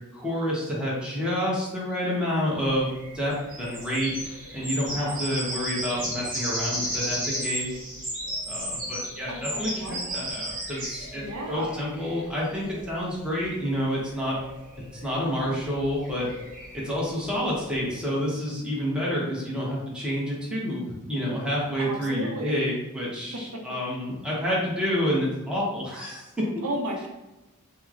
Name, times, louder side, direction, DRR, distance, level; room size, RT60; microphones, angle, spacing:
voice 1, 0.1-2.9 3.1-7.7 8.5-14.4 15.0-16.3 16.7-26.5, equal, 5° right, -6 dB, 0.8 m, -29 dB
sound 1, 2.6-18.0, equal, 40° right, 1.3 m, -35 dB
voice 2, 9.3-10.0 11.2-11.8 21.8-22.5 23.5-23.6 26.6-27.1, right 1 dB, 70° right, 1 dB, 0.6 m, -33 dB
3.1 x 2.0 x 3.5 m, 1.0 s
head